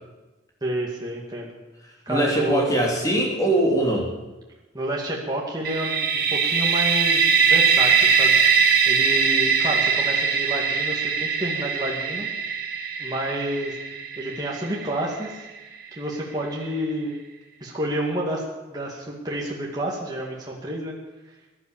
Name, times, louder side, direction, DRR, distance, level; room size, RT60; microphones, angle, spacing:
voice 1, 0.6-1.6 2.1-2.7 4.7-8.4 8.9-12.3 13.0-13.8 14.2-15.4 15.9-17.2 17.6-18.4 18.7-20.9, right 1 dB, 20° right, -3 dB, 2.3 m, -29 dB
voice 2, 2.1-4.1, right 1 dB, 20° left, -1 dB, 3.0 m, -21 dB
sound 1, 5.6-15.3, right 6 dB, 50° right, 2.0 m, -21 dB
17.0 x 11.5 x 7.3 m, 1.1 s
head